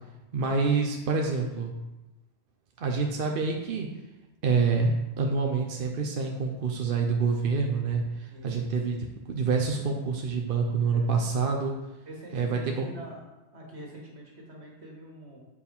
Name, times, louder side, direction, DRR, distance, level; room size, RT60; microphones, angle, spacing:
voice 1, 0.3-1.7 2.8-3.9 4.4-11.7 12.3-12.9, right 4 dB, 60° right, 2 dB, 0.9 m, -27 dB
voice 2, 8.3-9.0 10.9-11.0 12.1-13.2 13.5-15.4, right 1 dB, 80° right, -2 dB, 2.2 m, -45 dB
8.4 x 4.7 x 5.4 m, 1.0 s
omnidirectional pair, 1.1 m